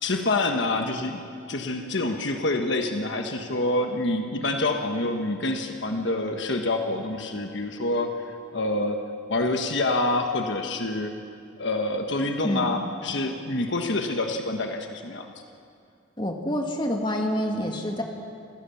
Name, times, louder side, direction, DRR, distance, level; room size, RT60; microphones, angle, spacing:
voice 1, 0.0-8.2 8.5-9.0 9.3-11.1 11.6-15.3, left 2 dB, 65° left, 4 dB, 1.3 m, -27 dB
voice 2, 12.4-12.8 16.2-18.0, equal, 25° left, 2 dB, 2.0 m, -27 dB
27.0 x 16.0 x 7.1 m, 2.4 s
head